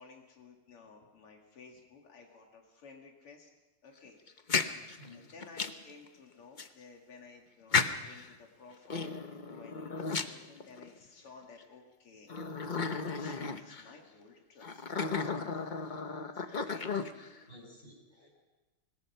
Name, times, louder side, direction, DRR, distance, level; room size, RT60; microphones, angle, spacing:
voice 1, 0.0-3.5 3.8-4.2 5.1-12.8 13.2-15.0 16.3-16.9 18.2-18.4, left 4 dB, 80° left, 1 dB, 2.9 m, -55 dB
sound 1, 4.3-5.9 6.6-6.7 7.7-8.3 8.8-11.0 11.6-11.7 12.3-13.9 14.6-17.4, left 5 dB, 55° left, 0.5 m, -34 dB
voice 2, 5.0-5.5 17.2-18.4, left 1 dB, 25° left, -2 dB, 7.9 m, -55 dB
25.5 x 19.5 x 5.6 m, 1.2 s
omnidirectional pair, 2.4 m